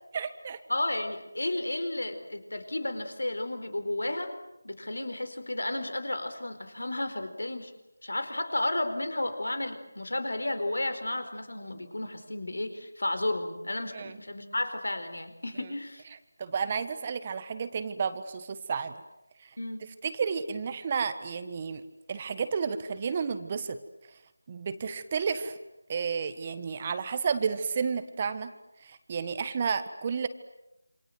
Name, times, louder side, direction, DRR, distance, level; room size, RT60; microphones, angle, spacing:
voice 1, 0.1-0.6 13.9-14.2 15.6-15.7 16.4-19.0 19.4-19.6 20.0-21.8 22.1-23.8 24.1-24.2 24.5-25.6 25.9-28.5 28.8-30.3, right 6 dB, 25° right, 11 dB, 1.4 m, -31 dB
voice 2, 0.7-4.3 4.6-7.7 8.0-16.0 19.6-19.8, left 1 dB, 75° left, 9 dB, 4.5 m, -32 dB
28.0 x 27.0 x 7.9 m, 0.90 s
figure-of-eight pair, 165°, 0 cm